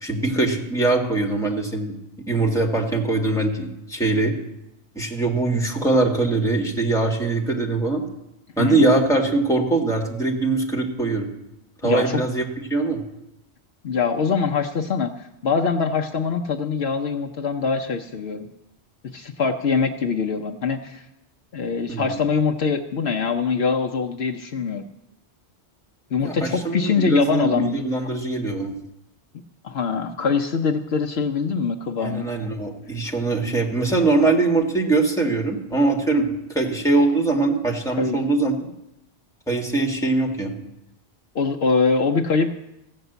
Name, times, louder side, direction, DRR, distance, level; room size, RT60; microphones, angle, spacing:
voice 1, 0.0-1.9 2.3-4.3 4.9-8.0 8.6-11.3 11.8-12.4 12.7-13.0 21.9-22.2 26.2-28.7 32.0-38.5 39.5-40.5, right 3 dB, 5° left, 1 dB, 1.8 m, -22 dB
voice 2, 11.8-12.2 13.8-18.5 19.1-21.0 21.5-24.8 26.1-27.8 29.6-32.3 38.0-38.2 41.3-42.6, left 5 dB, 65° left, 3 dB, 1.0 m, -23 dB
15.0 x 6.5 x 8.0 m, 0.87 s
omnidirectional pair, 1.1 m